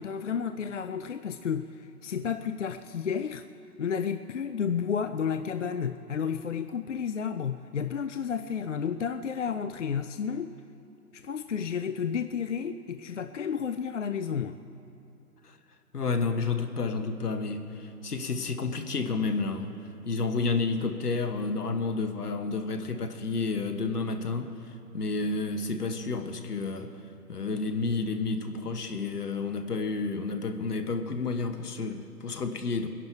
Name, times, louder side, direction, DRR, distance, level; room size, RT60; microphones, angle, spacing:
voice 1, 0.0-3.4 3.8-10.5 11.1-14.6, left 7 dB, 50° left, 10 dB, 0.5 m, -31 dB
voice 2, 15.9-19.8 20.1-26.9 27.3-32.9, left 4 dB, 70° left, 7 dB, 1.4 m, -30 dB
22.0 x 11.0 x 4.6 m, 2.8 s
figure-of-eight pair, 150°, 48 cm